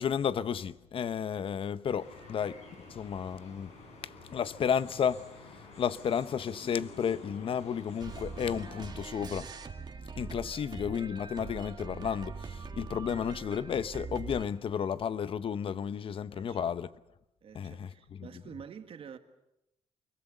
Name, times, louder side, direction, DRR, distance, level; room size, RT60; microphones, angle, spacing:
voice 1, 0.0-2.6 2.9-3.7 4.3-5.3 5.8-9.5 10.2-16.9 17.5-18.3, left 7 dB, 55° left, 0.8 m, -32 dB
sound 1, 1.9-8.9, left 3 dB, 80° left, 6.5 m, -50 dB
sound 2, 8.0-14.5, right 4 dB, 40° right, 1.9 m, -42 dB
voice 2, 16.3-16.8 17.4-19.2, right 7 dB, 60° right, 1.9 m, -48 dB
25.0 x 22.5 x 6.7 m
cardioid pair, 110°, 11 cm